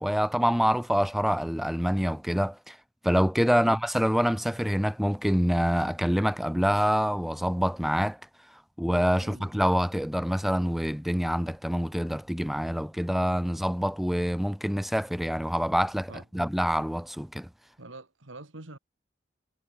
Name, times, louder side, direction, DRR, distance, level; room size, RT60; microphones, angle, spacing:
voice 1, 0.0-2.8 3.0-8.2 8.8-17.5, equal, ahead, 0.5 m, -26 dB
voice 2, 9.2-9.5 16.1-16.3 17.8-18.8, right 2 dB, 90° right, 2.2 m, -45 dB
head